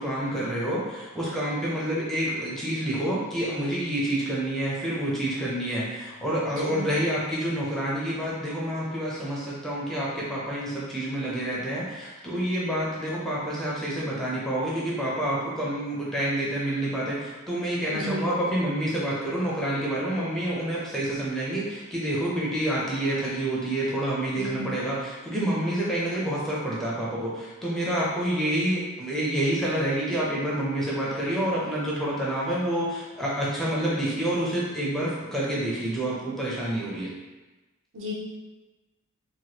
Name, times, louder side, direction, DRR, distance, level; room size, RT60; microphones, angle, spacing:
voice 1, 0.0-37.1, right 1 dB, ahead, -7 dB, 0.4 m, -28 dB
voice 2, 17.9-18.3 24.3-24.7 37.9-38.1, equal, 60° right, -3 dB, 0.6 m, -33 dB
3.1 x 2.2 x 2.8 m, 1.1 s
head